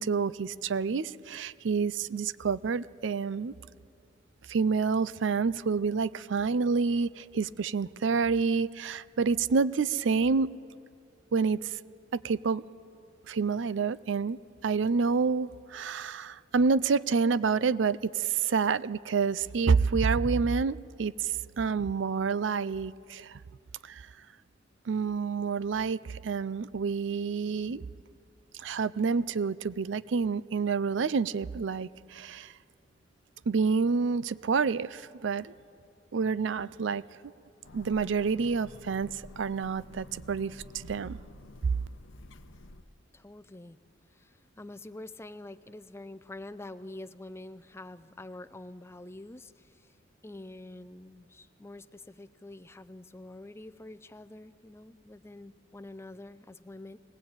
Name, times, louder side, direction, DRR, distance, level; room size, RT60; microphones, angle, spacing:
voice 1, 0.0-3.5 4.5-10.5 11.3-11.8 12.1-12.6 13.3-23.4 23.8-24.1 24.9-27.9 28.5-32.5 33.5-35.5 36.1-37.0 37.7-41.2 41.6-41.7, right 5 dB, 70° right, 18 dB, 0.5 m, -28 dB
sound 1, 37.6-42.8, left 2 dB, 80° left, 0.8 m, -50 dB
voice 2, 43.1-43.8 44.1-49.9 50.2-57.0, left 2 dB, 15° left, 12 dB, 0.5 m, -46 dB
20.5 x 18.5 x 8.8 m, 2.3 s
head